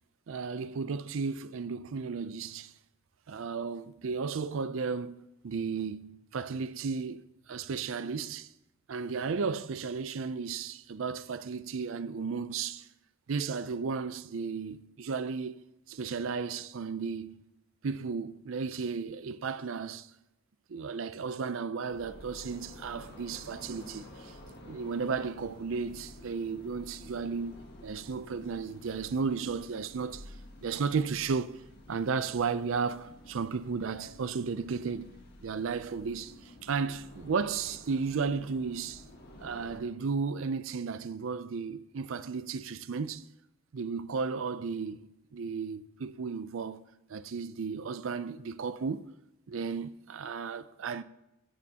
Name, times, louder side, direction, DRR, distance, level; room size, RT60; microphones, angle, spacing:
voice 1, 0.3-2.7 3.3-8.5 8.9-12.9 13.3-17.4 17.8-20.1 20.7-24.4 24.6-30.3 30.6-31.6 31.9-35.1 35.4-39.0 39.4-43.3 43.7-46.8 47.1-49.1 49.5-51.0, right 5 dB, 75° right, 0.5 m, -34 dB
sound 1, 21.9-39.8, left 1 dB, 50° left, 1.6 m, -51 dB
15.0 x 8.5 x 2.9 m
head